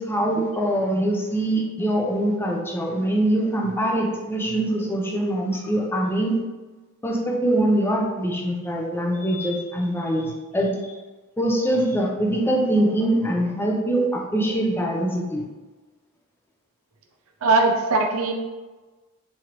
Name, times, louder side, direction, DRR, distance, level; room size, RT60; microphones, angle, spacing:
voice 1, 0.0-6.4 7.0-10.9 11.4-15.4, right 1 dB, 10° left, 0 dB, 0.5 m, -23 dB
voice 2, 17.4-18.3, right 3 dB, 70° right, 2 dB, 0.5 m, -20 dB
3.8 x 3.1 x 2.9 m, 1.2 s
head